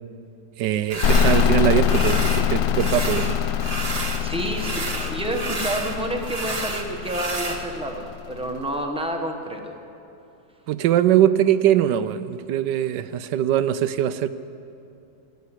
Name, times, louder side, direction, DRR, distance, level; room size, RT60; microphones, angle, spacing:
voice 1, 0.6-3.4 10.7-14.3, right 11 dB, 75° right, 14 dB, 1.2 m, -21 dB
sound 1, 0.9-1.5 1.8-2.5 2.7-4.2 4.5-7.6, right 2 dB, 25° right, 1.2 m, -30 dB
sound 2, 1.0-8.6, left 8 dB, 70° left, 0.9 m, -24 dB
voice 2, 4.2-9.8, right 1 dB, 5° right, 3 dB, 1.0 m, -29 dB
15.0 x 9.3 x 9.8 m, 2.7 s
omnidirectional pair, 1.9 m